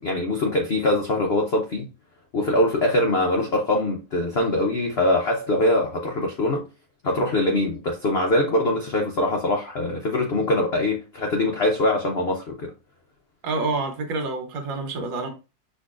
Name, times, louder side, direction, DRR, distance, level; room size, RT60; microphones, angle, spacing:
voice 1, 0.0-1.9 2.3-6.7 7.0-12.7, left 1 dB, 85° left, 0.5 m, -23 dB
voice 2, 13.4-15.3, right 3 dB, 75° right, 1.8 m, -27 dB
6.3 x 2.9 x 2.4 m
omnidirectional pair, 2.1 m